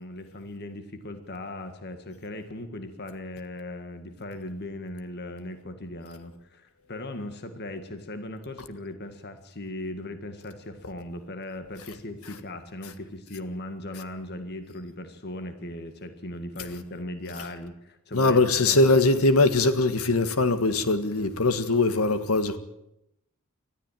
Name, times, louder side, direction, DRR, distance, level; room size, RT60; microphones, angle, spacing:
voice 1, 0.0-18.8, left 1 dB, 50° left, 1.8 m, -38 dB
voice 2, 18.1-22.6, left 2 dB, 85° left, 1.7 m, -21 dB
20.5 x 14.0 x 9.1 m
head